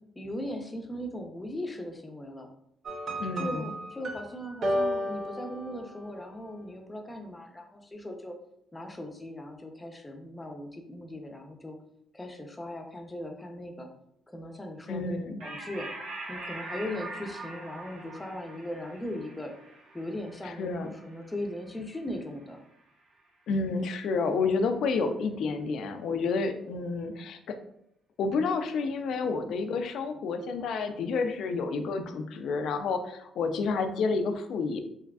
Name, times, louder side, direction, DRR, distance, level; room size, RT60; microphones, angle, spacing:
voice 1, 0.2-2.5 3.4-8.3 8.7-11.8 12.1-13.9 14.3-15.9 16.3-19.5 19.9-22.6, left 1 dB, 15° left, 3 dB, 0.6 m, -38 dB
sound 1, 2.9-6.3, equal, 60° right, 0.6 m, -33 dB
voice 2, 3.2-3.7 14.9-15.4 20.4-20.9 23.5-27.6 28.2-34.8, left 4 dB, 75° left, 7 dB, 0.4 m, -30 dB
sound 2, 15.4-22.3, right 2 dB, 80° right, 1.1 m, -43 dB
3.5 x 3.1 x 2.3 m, 0.74 s
cardioid pair, 90°, 0 cm